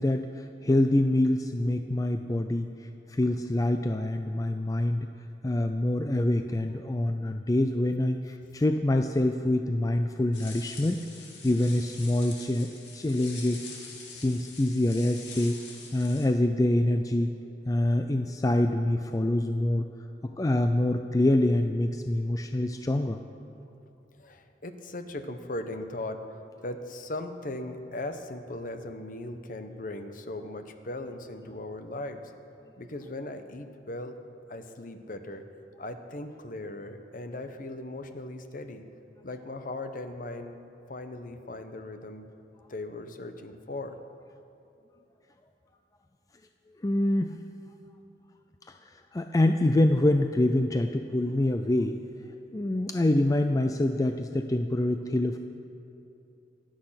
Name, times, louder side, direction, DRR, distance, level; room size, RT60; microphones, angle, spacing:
voice 1, 0.0-5.1 5.4-11.0 11.4-12.7 12.9-15.6 15.9-17.3 17.7-19.9 20.4-23.2 46.8-47.4 48.7-52.0 52.5-55.4, left 1 dB, 20° left, 6 dB, 0.4 m, -26 dB
sound 1, 10.3-16.3, left 4 dB, 75° left, 2.6 m, -45 dB
voice 2, 24.2-32.3 32.8-34.2 34.5-35.5 35.8-38.9 39.2-40.6 40.9-42.3 42.7-44.0, left 2 dB, 50° left, 8 dB, 1.0 m, -38 dB
25.0 x 8.9 x 5.8 m, 2.7 s
head